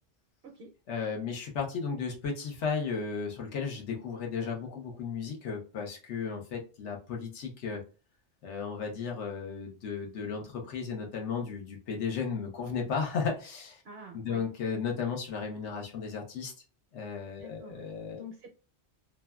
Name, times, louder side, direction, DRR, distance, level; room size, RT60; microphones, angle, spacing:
voice 1, 0.9-7.8 8.4-13.8 14.1-16.5 16.9-18.2, left 5 dB, 80° left, 1 dB, 1.1 m, -34 dB
voice 2, 13.8-14.4 17.4-17.8 18.1-18.5, equal, 65° right, 2 dB, 0.8 m, -47 dB
3.1 x 2.2 x 2.2 m, 0.34 s
omnidirectional pair, 1.2 m